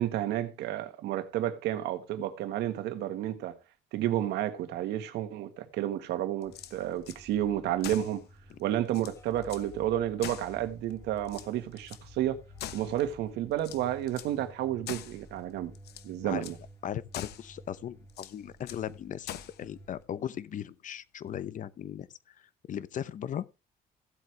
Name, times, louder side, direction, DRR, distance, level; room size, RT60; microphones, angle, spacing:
voice 1, 0.0-3.6 3.9-8.3 8.6-12.4 12.7-15.7 16.0-16.6, right 12 dB, 80° right, 1.7 m, -31 dB
sound 1, 6.4-7.2 7.8-8.2 8.6-8.7 8.9-9.7 10.2-10.9 11.2-12.0 12.6-13.2 13.6-14.4 14.9-15.2 15.7-16.1 16.4-16.6 17.1-17.5 18.1-18.9 19.3-19.6, left 12 dB, 75° left, 1.1 m, -43 dB
sound 2, 6.4-20.0, left 1 dB, 15° left, 4.1 m, -53 dB
voice 2, 16.8-19.3 19.6-23.4, left 10 dB, 50° left, 0.9 m, -38 dB
16.0 x 8.0 x 3.4 m
cardioid pair, 110°, 17 cm